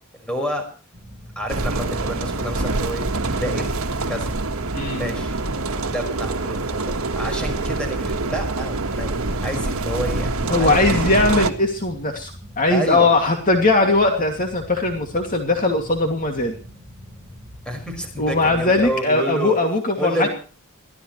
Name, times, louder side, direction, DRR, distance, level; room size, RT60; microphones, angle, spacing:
voice 1, 0.2-0.6 1.4-4.3 4.9-5.3 5.9-9.1 9.4-10.3 10.6-11.0 12.7-13.1 17.7-19.6 20.0-20.3, equal, 5° left, 4 dB, 5.4 m, -29 dB
sound 1, 0.9-19.0, equal, 15° right, 5.9 m, -43 dB
sound 2, 1.5-11.5, right 2 dB, 70° right, 1.6 m, -25 dB
voice 2, 10.5-16.5 18.2-20.3, left 2 dB, 40° left, 3 dB, 2.5 m, -20 dB
23.5 x 15.5 x 3.2 m, 0.39 s
head